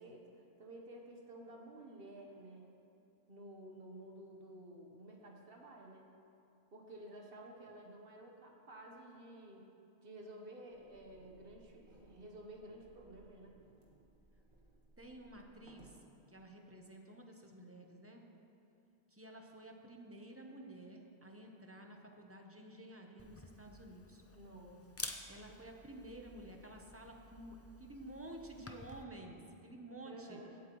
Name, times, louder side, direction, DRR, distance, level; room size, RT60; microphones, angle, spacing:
voice 1, 0.0-2.7 3.3-6.1 6.7-9.7 10.0-13.5 24.3-24.8 25.5-25.6 30.0-30.6, right 1 dB, 60° right, 0 dB, 1.3 m, -53 dB
sound 1, 10.7-16.0, right 2 dB, 80° right, 1.7 m, -65 dB
voice 2, 15.0-15.9 16.3-18.2 19.1-24.2 25.3-30.4, right 1 dB, 15° right, 1 dB, 0.7 m, -52 dB
Camera, 23.2-29.0, left 2 dB, 20° left, 0.4 m, -51 dB
16.5 x 8.1 x 3.1 m, 2.7 s
omnidirectional pair, 1.1 m